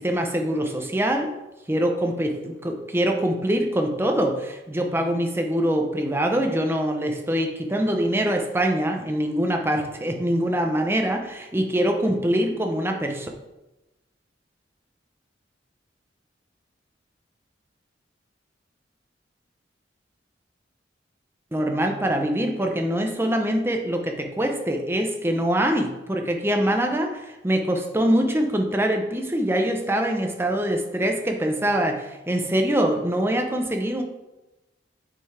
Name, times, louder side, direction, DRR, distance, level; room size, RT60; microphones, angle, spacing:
voice 1, 0.0-1.4 1.7-13.3 21.5-34.0, right 1 dB, 15° right, 3 dB, 0.8 m, -24 dB
8.5 x 5.5 x 3.4 m, 1.0 s
head